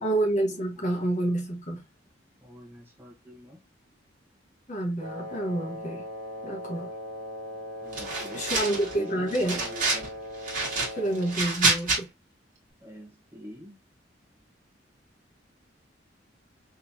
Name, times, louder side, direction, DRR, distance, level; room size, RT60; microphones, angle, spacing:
voice 1, 0.0-1.8 4.7-6.1 6.4-6.9 8.3-9.6 10.9-12.1, right 1 dB, 40° left, 1.1 m, -28 dB
voice 2, 2.4-3.6 7.8-10.1 12.8-13.8, left 1 dB, 10° right, 1.1 m, -46 dB
Wind instrument woodwind instrument, 5.0-11.4, left 1 dB, 65° right, 1.6 m, -39 dB
sound 1, 7.9-8.9 9.3-10.1 10.4-12.0, right 3 dB, 45° right, 1.6 m, -27 dB
3.8 x 3.1 x 2.8 m
head